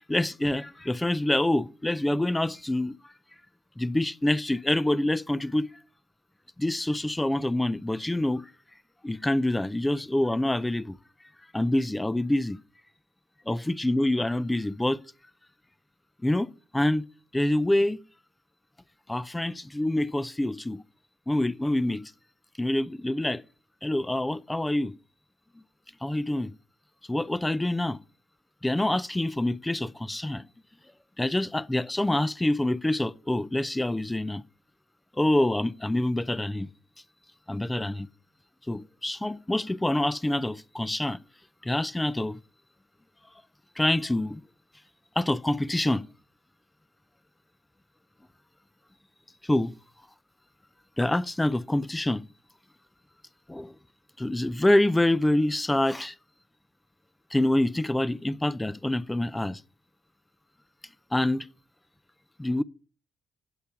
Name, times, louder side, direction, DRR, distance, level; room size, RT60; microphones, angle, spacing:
voice 1, 0.1-3.1 3.8-5.7 6.6-8.5 9.0-11.0 11.5-12.6 13.5-15.0 16.2-17.1 17.3-18.0 19.1-20.8 21.3-22.1 22.6-23.4 23.8-24.9 26.0-26.5 27.1-28.0 28.6-30.4 31.2-34.4 35.2-36.7 37.5-38.1 38.7-41.2 41.6-42.4 43.8-44.4 45.2-46.0 49.4-49.7 51.0-52.2 53.5-53.7 54.2-56.2 57.3-59.6 61.1-61.5 62.4-62.6, left 1 dB, 10° left, 0.6 m, -26 dB
9.6 x 8.1 x 5.9 m
supercardioid pair, 75°, 0 cm